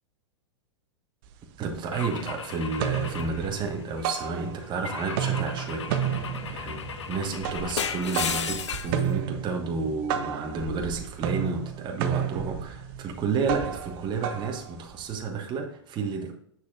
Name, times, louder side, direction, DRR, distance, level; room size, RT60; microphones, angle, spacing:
sound 1, 1.2-1.3 1.7-2.3 2.6-4.8 5.1-15.2, right 9 dB, 55° right, 0.8 m, -32 dB
voice 1, 1.6-6.8 7.1-16.3, right 4 dB, 30° right, 2 dB, 1.4 m, -31 dB
Car / Engine / Glass, 1.9-4.1 4.8-9.0, left 7 dB, 85° left, 0.8 m, -35 dB
sound 2, 5.9-11.6, left 5 dB, 25° left, 0.9 m, -49 dB
8.0 x 6.5 x 2.5 m, 0.70 s
hypercardioid pair, 105°, 15 cm